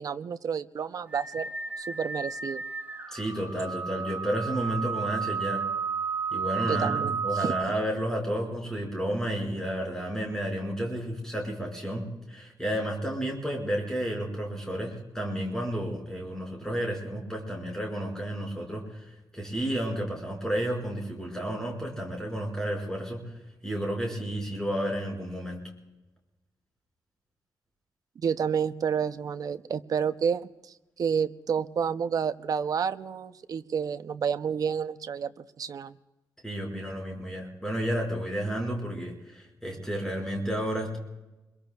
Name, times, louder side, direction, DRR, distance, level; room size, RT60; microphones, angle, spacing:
voice 1, 0.0-1.5 1.8-2.6 6.6-7.5 28.2-36.0, right 7 dB, 50° right, 11 dB, 0.5 m, -30 dB
sound 1, 1.1-7.6, right 5 dB, 25° right, 1.7 m, -32 dB
voice 2, 3.1-5.6 6.3-23.3 23.6-25.6 36.4-41.0, equal, 5° left, -1 dB, 5.5 m, -31 dB
26.5 x 22.5 x 2.3 m, 1.0 s
wide cardioid pair, 165°, 8 cm